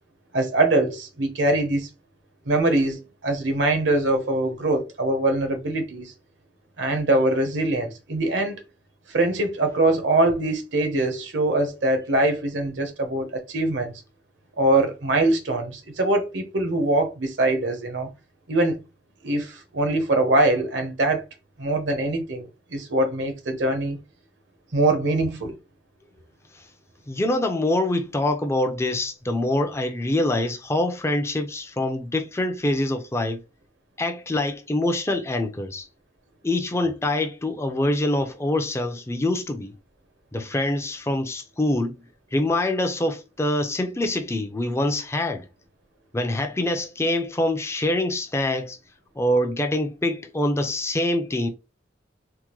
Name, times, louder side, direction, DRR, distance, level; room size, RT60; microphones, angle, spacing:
voice 1, 0.3-1.9 2.4-6.1 6.8-8.6 9.1-13.9 14.6-18.1 18.5-18.8 19.2-21.2 21.6-24.0 24.7-25.6, right 2 dB, 75° right, 0.9 m, -23 dB
voice 2, 27.1-33.4 34.0-35.9 36.4-39.7 40.3-42.0 42.3-45.5 46.1-48.8 49.2-51.5, left 1 dB, 15° left, 0.4 m, -25 dB
3.5 x 2.1 x 3.0 m
head